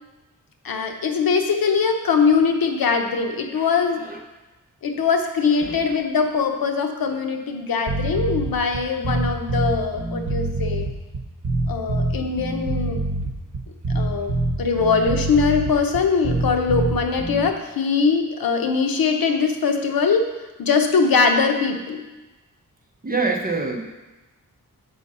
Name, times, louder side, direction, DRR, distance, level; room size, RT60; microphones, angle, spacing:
voice 1, 0.6-4.1 4.8-10.9 11.7-13.0 13.9-14.3 14.6-20.3 20.6-22.0, left 5 dB, 90° left, 5 dB, 0.8 m, -21 dB
voice 2, 3.6-4.2 5.6-5.8 23.0-23.8, right 3 dB, 25° right, 1 dB, 0.8 m, -26 dB
sound 1, 7.9-17.5, right 2 dB, 60° right, 1.0 m, -25 dB
7.4 x 5.3 x 4.2 m, 1.1 s
wide cardioid pair, 155°, 34 cm